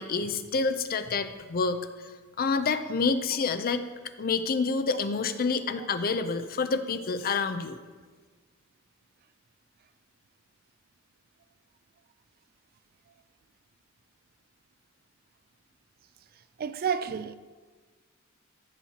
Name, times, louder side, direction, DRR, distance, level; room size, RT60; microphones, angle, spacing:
voice 1, 0.0-1.9 2.4-3.8 4.2-7.8, left 4 dB, 45° left, 0.5 m, -28 dB
voice 2, 16.6-17.4, right 7 dB, 45° right, 0.4 m, -30 dB
13.5 x 7.1 x 2.9 m
head